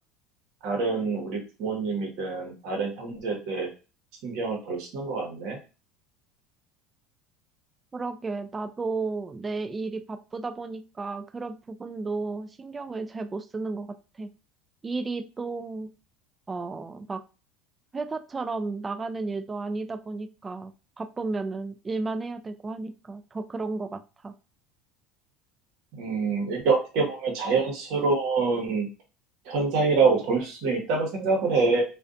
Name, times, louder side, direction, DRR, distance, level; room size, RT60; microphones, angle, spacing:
voice 1, 0.6-3.7 4.2-5.6 26.0-28.9 29.5-31.8, right 4 dB, 65° right, 2 dB, 0.9 m, -26 dB
voice 2, 7.9-13.9 14.2-14.3 14.8-15.9 16.5-17.2 17.9-20.7 21.0-24.3, right 3 dB, 20° right, 8 dB, 0.3 m, -33 dB
2.5 x 2.2 x 2.4 m, 0.31 s
supercardioid pair, 100°, 0 cm